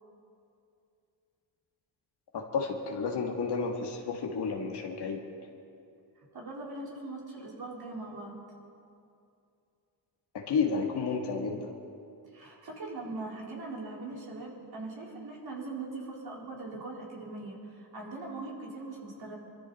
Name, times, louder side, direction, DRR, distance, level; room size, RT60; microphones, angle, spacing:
voice 1, 2.3-5.2 10.3-11.7, left 5 dB, 65° left, 1 dB, 1.8 m, -31 dB
voice 2, 6.3-8.3 12.3-19.3, right 2 dB, 55° right, -3 dB, 4.1 m, -41 dB
22.0 x 14.0 x 4.2 m, 2.5 s
cardioid pair, 80°, 44 cm